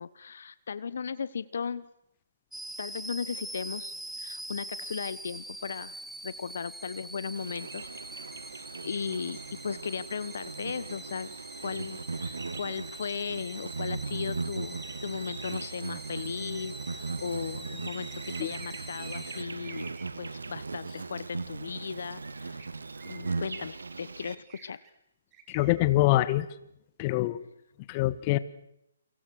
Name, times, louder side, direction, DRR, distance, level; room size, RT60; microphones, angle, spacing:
voice 1, 0.0-1.9 2.8-7.9 8.8-11.3 11.6-22.6 23.0-24.8, left 6 dB, 65° left, 17 dB, 1.1 m, -37 dB
sound 1, 2.5-19.4, right 1 dB, 5° right, 0.9 m, -44 dB
Insect, 7.4-24.4, right 4 dB, 80° right, 1.4 m, -38 dB
sound 2, 18.2-20.0 22.6-22.7 23.0-23.6 24.2-24.9 25.3-25.7, right 6 dB, 25° right, 4.3 m, -51 dB
voice 2, 25.5-26.5 27.0-27.4 27.9-28.4, left 16 dB, 30° left, 16 dB, 1.4 m, -24 dB
29.5 x 24.0 x 6.4 m, 0.78 s
figure-of-eight pair, 140°, 0 cm